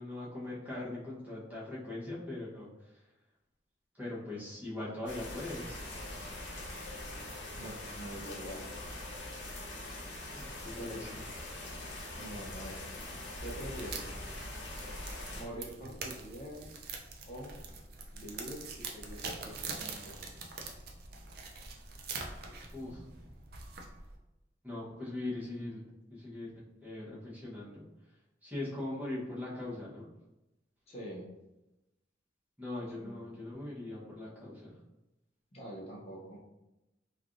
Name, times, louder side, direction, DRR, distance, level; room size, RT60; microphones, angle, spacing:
voice 1, 0.0-3.0 4.0-5.8 10.3-11.1 22.7-23.0 24.6-25.8 26.1-27.8 28.4-30.1 32.6-34.8, left 2 dB, 10° right, -8 dB, 0.9 m, -41 dB
sound 1, 5.1-15.4, left 1 dB, 85° left, 0.7 m, -43 dB
voice 2, 7.6-8.6 10.8-11.1 12.2-12.8 13.4-14.2 15.3-16.8 17.3-17.5 18.1-20.2 30.9-31.2 32.9-33.2 35.5-36.4, right 1 dB, 35° left, -4 dB, 0.7 m, -45 dB
sound 2, 13.4-24.2, right 4 dB, 55° right, 0.4 m, -44 dB
3.2 x 2.4 x 2.5 m, 0.97 s
head